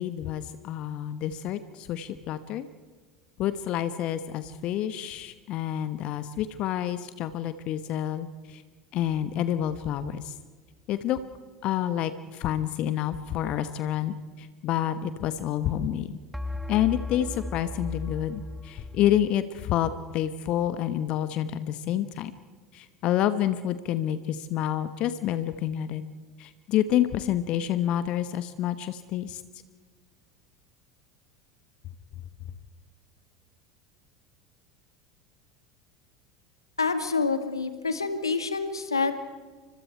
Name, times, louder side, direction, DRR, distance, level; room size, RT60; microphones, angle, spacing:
voice 1, 0.0-2.7 3.4-8.6 8.9-10.3 10.9-11.2 11.6-16.2 16.7-22.3 22.7-26.0 26.4-29.4, left 11 dB, 45° left, 13 dB, 1.1 m, -28 dB
sound 1, 9.2-9.8 16.3-19.4, left 2 dB, ahead, 0.7 m, -37 dB
voice 2, 36.8-39.1, left 4 dB, 80° left, 10 dB, 1.9 m, -27 dB
30.0 x 25.5 x 4.5 m, 1.4 s
figure-of-eight pair, 75°, 2 cm